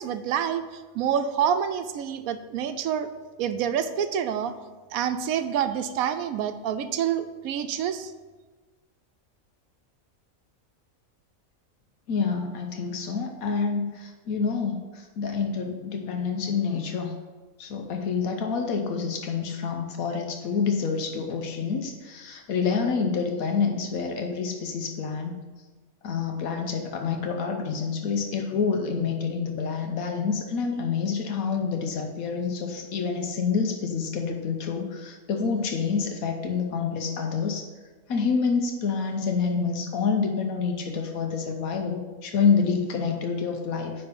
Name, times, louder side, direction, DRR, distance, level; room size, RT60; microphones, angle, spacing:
voice 1, 0.0-3.1 3.4-4.5 4.9-8.1, right 8 dB, 85° right, 10 dB, 1.1 m, -27 dB
voice 2, 12.1-17.1 17.6-25.4 26.0-37.7 38.1-44.1, left 5 dB, 80° left, 4 dB, 1.2 m, -27 dB
9.9 x 3.3 x 5.3 m, 1.3 s
omnidirectional pair, 1.4 m